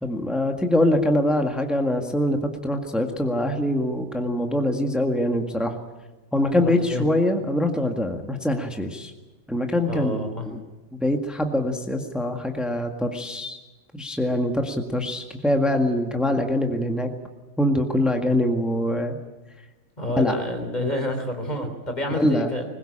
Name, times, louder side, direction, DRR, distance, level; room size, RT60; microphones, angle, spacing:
voice 1, 0.0-5.7 6.3-9.1 9.5-10.6 10.9-13.6 13.9-17.1 17.6-19.2 20.2-20.4 22.1-22.5, left 1 dB, ahead, 4 dB, 1.8 m, -24 dB
voice 2, 6.5-7.0 9.9-10.5 20.0-22.7, left 1 dB, 30° left, 5 dB, 3.6 m, -28 dB
21.5 x 20.5 x 8.9 m, 1.2 s
omnidirectional pair, 1.4 m